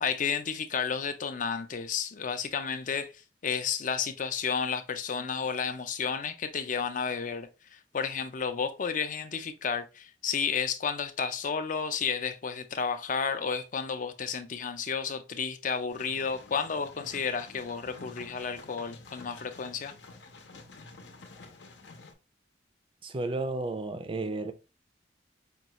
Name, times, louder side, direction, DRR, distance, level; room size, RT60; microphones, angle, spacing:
voice 1, 0.0-3.1 3.4-19.9, left 6 dB, 45° left, 0.5 m, -32 dB
sound 1, 15.9-22.1, left 3 dB, 80° left, 0.7 m, -49 dB
voice 2, 23.0-24.5, right 2 dB, 30° right, 0.4 m, -32 dB
5.2 x 2.3 x 2.9 m
head